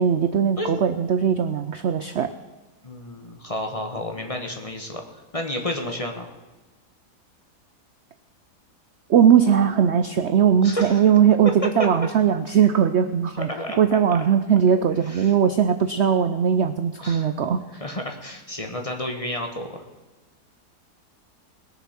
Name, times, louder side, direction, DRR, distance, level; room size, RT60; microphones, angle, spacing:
voice 1, 0.0-2.3 9.1-13.5 13.8-17.6, right 8 dB, 60° right, 9 dB, 0.7 m, -19 dB
voice 2, 2.8-5.0 5.3-6.3 10.6-11.0 13.4-13.8 15.1-15.3 17.0-17.3 17.8-19.8, left 1 dB, 25° left, 3 dB, 1.2 m, -31 dB
20.5 x 7.0 x 5.9 m, 1.2 s
omnidirectional pair, 1.7 m